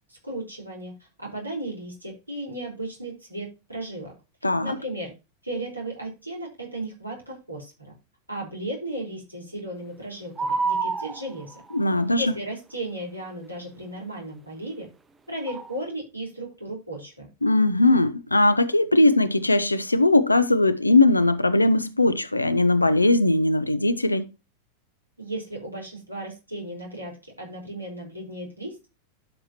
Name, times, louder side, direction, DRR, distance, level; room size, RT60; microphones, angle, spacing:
voice 1, 0.1-0.9 1.2-4.1 4.6-5.1 5.4-7.9 8.3-11.6 12.2-14.9 15.3-17.3 25.2-28.9, right 1 dB, 85° right, 4.8 m, -35 dB
voice 2, 4.4-4.8 11.7-12.3 17.4-24.3, left 2 dB, 85° left, 0.8 m, -20 dB
sound 1, 10.4-11.8 15.5-15.7, right 4 dB, 15° right, 0.9 m, -27 dB
11.5 x 6.5 x 3.0 m
figure-of-eight pair, 90°, 0 cm